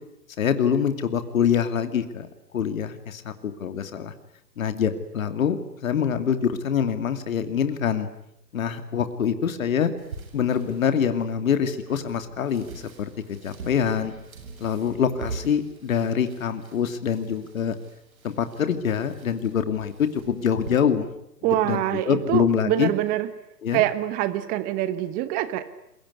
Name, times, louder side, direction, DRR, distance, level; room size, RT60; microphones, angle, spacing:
voice 1, 0.4-2.3 2.5-4.1 4.6-8.1 8.5-9.9 10.3-13.1 13.4-14.1 14.6-17.8 18.2-21.1 21.6-22.9 23.6-23.8, left 8 dB, 55° left, 9 dB, 2.6 m, -25 dB
sound 1, 10.0-20.7, right 4 dB, 55° right, 8.0 m, -43 dB
voice 2, 21.4-23.3 23.7-25.6, right 13 dB, 15° right, 14 dB, 1.2 m, -25 dB
27.5 x 22.5 x 9.7 m, 0.79 s
figure-of-eight pair, 130°, 49 cm